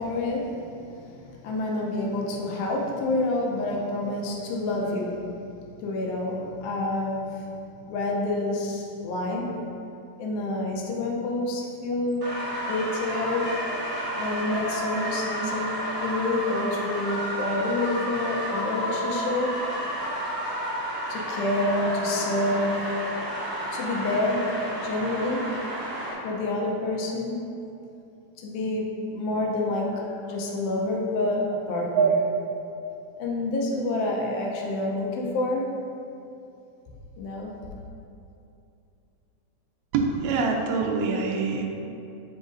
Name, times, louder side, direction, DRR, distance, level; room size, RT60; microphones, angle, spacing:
voice 1, 0.0-5.4 5.8-7.5 7.9-9.6 10.2-12.3 12.7-13.6 14.2-19.6 21.1-22.9 23.7-25.5 26.2-27.4 28.4-32.1 33.2-35.8 37.2-37.5, left 2 dB, 90° left, -1 dB, 2.2 m, -28 dB
sound 1, 12.2-26.1, equal, 55° right, 1.2 m, -31 dB
voice 2, 39.9-41.7, right 5 dB, 75° right, 1 dB, 1.9 m, -24 dB
7.9 x 4.9 x 2.5 m, 2.7 s
omnidirectional pair, 3.4 m